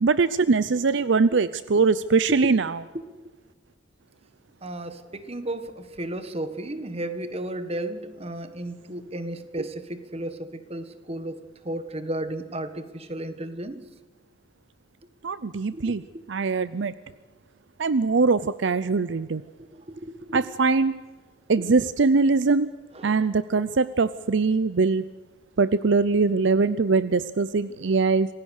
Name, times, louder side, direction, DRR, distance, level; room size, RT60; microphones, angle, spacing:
voice 1, 0.0-2.8 15.2-16.0 16.3-16.9 17.8-19.4 20.3-20.9 21.5-22.7 23.0-25.0 25.6-28.3, right 4 dB, 65° right, 15 dB, 0.6 m, -22 dB
voice 2, 4.6-11.4 11.6-13.8 15.7-16.2 19.9-20.4 22.9-23.2, right 1 dB, 35° right, 10 dB, 1.6 m, -34 dB
26.5 x 16.5 x 6.6 m, 1.3 s
head